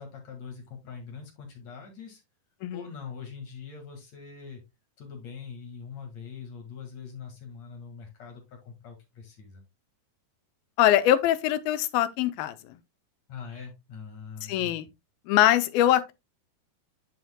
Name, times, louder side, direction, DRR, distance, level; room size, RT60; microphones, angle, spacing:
voice 1, 0.0-2.2 2.7-4.6 5.0-9.6 13.3-14.7, left 6 dB, 50° left, 2.7 m, -43 dB
voice 2, 10.8-12.8 14.4-14.9 15.3-16.1, left 12 dB, 85° left, 2.4 m, -23 dB
10.5 x 5.1 x 2.2 m
omnidirectional pair, 4.3 m